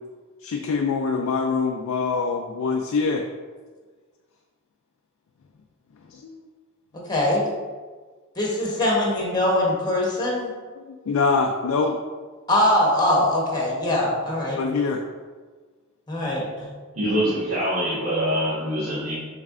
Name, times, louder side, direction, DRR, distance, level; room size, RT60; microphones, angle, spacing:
voice 1, 0.4-3.2 6.1-6.4 10.8-12.0 14.6-15.0, left 4 dB, 75° left, 3 dB, 0.4 m, -24 dB
voice 2, 7.1-7.4 8.4-10.5 12.5-14.6 16.1-16.7, left 1 dB, 20° left, -3 dB, 0.9 m, -22 dB
voice 3, 16.9-19.1, equal, 80° right, -12 dB, 1.4 m, -24 dB
6.6 x 3.2 x 2.5 m, 1.4 s
head